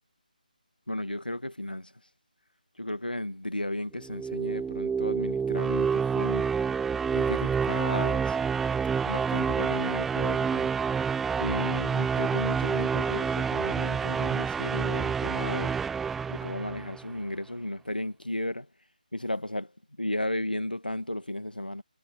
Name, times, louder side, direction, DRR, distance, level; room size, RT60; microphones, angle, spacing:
voice 1, 0.9-1.9 2.8-6.6 7.1-8.4 9.1-10.7 11.4-15.8 16.3-18.7 19.1-19.7 20.0-21.8, left 1 dB, 80° left, 1.7 m, -34 dB
sound 1, 4.0-17.1, right 6 dB, 5° right, 0.7 m, -28 dB
figure-of-eight pair, 155°, 5 cm